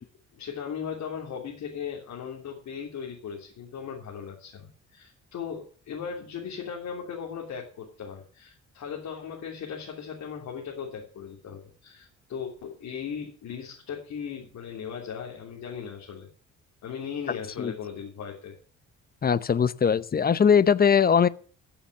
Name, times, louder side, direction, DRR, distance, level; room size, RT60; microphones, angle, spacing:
voice 1, 0.3-16.3 16.8-18.5, left 7 dB, 70° left, 3.3 m, -37 dB
voice 2, 19.2-21.3, left 7 dB, 30° left, 0.8 m, -20 dB
14.5 x 7.1 x 6.9 m
cardioid pair, 90°, 30 cm